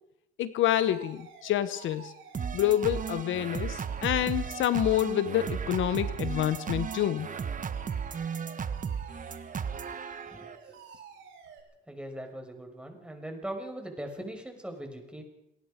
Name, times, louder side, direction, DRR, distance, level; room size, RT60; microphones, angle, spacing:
voice 1, 0.4-2.1 2.5-7.3, left 12 dB, 80° left, 13 dB, 1.1 m, -27 dB
Alarm, 0.7-11.6, right 7 dB, 85° right, 7.1 m, -50 dB
sound 1, 2.3-10.6, right 6 dB, 40° right, 1.6 m, -35 dB
voice 2, 10.3-11.0 11.9-15.2, right 1 dB, 5° right, 4 dB, 5.9 m, -40 dB
27.5 x 19.0 x 5.2 m, 0.79 s
cardioid pair, 90°, 20 cm